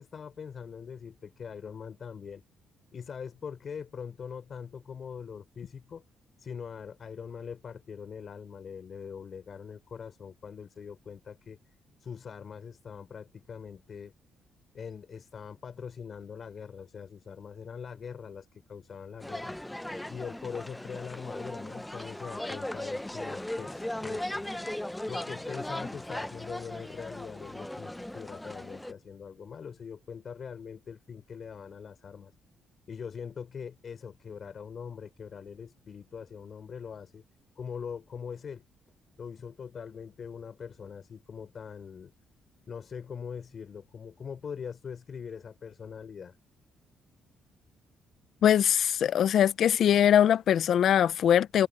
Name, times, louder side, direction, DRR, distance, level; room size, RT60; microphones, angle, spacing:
voice 1, 0.0-2.4 2.9-6.0 6.4-11.6 12.0-14.1 14.7-19.6 20.1-24.6 25.1-32.3 32.9-37.2 37.6-38.6 39.2-42.1 42.7-46.3, left 6 dB, 50° left, 5.3 m, -42 dB
sound 1, 19.2-28.9, left 1 dB, 5° left, 0.7 m, -38 dB
voice 2, 48.4-51.7, left 9 dB, 65° left, 0.7 m, -22 dB
cardioid pair, 90°, 0 cm